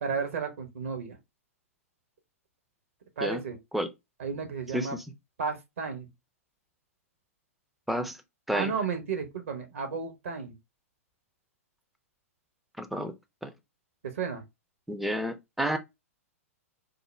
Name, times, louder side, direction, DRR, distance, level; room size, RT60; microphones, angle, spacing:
voice 1, 0.0-1.2 3.2-3.6 4.2-5.0 5.4-6.1 8.5-10.6 14.0-14.4, right 5 dB, 60° right, 0.9 m, -33 dB
voice 2, 12.8-13.1 13.4-13.5 14.9-15.8, equal, ahead, 0.4 m, -30 dB
3.7 x 2.0 x 3.1 m
figure-of-eight pair, 105°, 8 cm